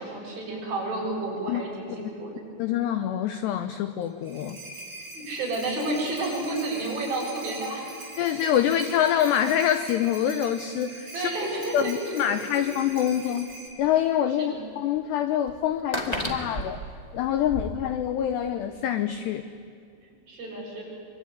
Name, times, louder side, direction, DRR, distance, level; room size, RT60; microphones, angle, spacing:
voice 1, 0.0-2.4 5.1-7.9 11.1-12.6 14.4-14.7 20.0-20.8, right 2 dB, 45° right, -3 dB, 8.9 m, -31 dB
voice 2, 2.6-4.6 8.2-11.3 11.7-13.5 13.8-16.8 17.1-19.4, left 10 dB, 80° left, 10 dB, 2.4 m, -25 dB
sound 1, 4.0-13.7, right 2 dB, 20° right, 5.0 m, -43 dB
sound 2, 12.6-12.7 13.5-13.6 13.8-13.9 15.0-15.1 15.5-17.7, equal, 40° left, 0.5 m, -32 dB
25.0 x 24.0 x 9.8 m, 2.3 s
omnidirectional pair, 5.9 m